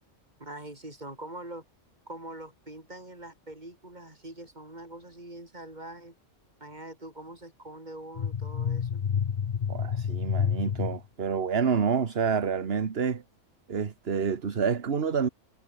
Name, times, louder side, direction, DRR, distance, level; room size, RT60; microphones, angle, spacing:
voice 1, 0.4-1.6 2.1-6.2 6.6-9.0, right 1 dB, 35° right, 5.4 m, -43 dB
sound 1, 8.2-11.0, left 7 dB, 45° left, 0.7 m, -29 dB
voice 2, 9.7-13.2 13.7-15.3, right 6 dB, 55° right, 1.5 m, -28 dB
omnidirectional pair, 1.3 m